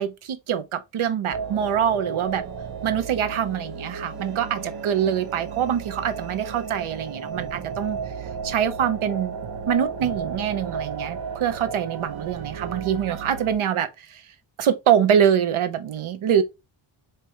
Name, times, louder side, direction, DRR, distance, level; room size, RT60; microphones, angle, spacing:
voice 1, 0.0-2.5 2.8-8.0 8.4-9.3 9.7-14.2 14.6-16.4, right 9 dB, 85° right, 0.8 m, -24 dB
sound 1, 1.3-13.5, right 5 dB, 50° right, 0.7 m, -34 dB
4.6 x 3.0 x 3.3 m
wide cardioid pair, 160°, 48 cm